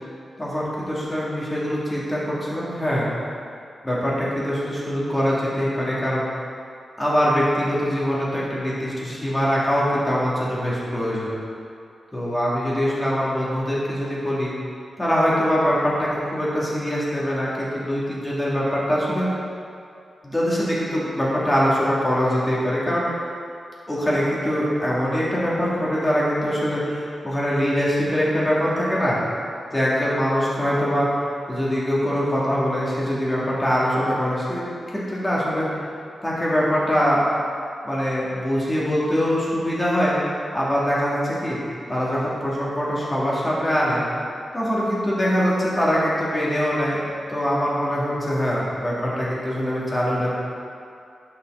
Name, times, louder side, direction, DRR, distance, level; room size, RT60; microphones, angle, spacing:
voice 1, 0.4-3.1 3.8-6.2 7.0-11.3 12.1-14.5 15.0-19.3 20.2-23.1 23.9-29.2 29.7-31.1 31.5-35.7 36.2-37.2 37.8-40.2 40.5-41.6 41.9-44.0 44.5-47.0 47.3-50.3, equal, 15° left, -7 dB, 2.3 m, -23 dB
11.0 x 5.8 x 3.9 m, 2.4 s
wide cardioid pair, 115°, 0 cm